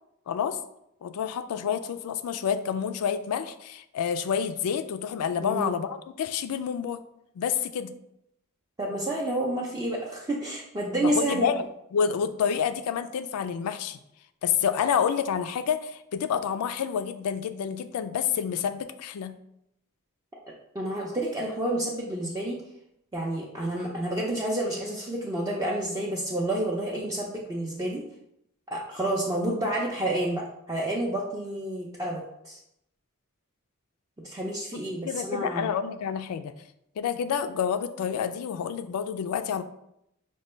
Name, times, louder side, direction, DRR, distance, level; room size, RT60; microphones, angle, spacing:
voice 1, 0.3-0.6 1.0-7.0 7.4-7.9 11.0-11.6 11.9-14.0 14.4-19.3 35.0-36.5 37.0-39.6, left 7 dB, 85° left, 10 dB, 0.3 m, -28 dB
voice 2, 5.4-5.7 8.8-11.5 20.7-22.6 23.1-28.0 28.7-32.6 34.2-35.7, right 1 dB, 15° right, -3 dB, 0.4 m, -29 dB
5.1 x 2.2 x 3.1 m, 0.79 s
head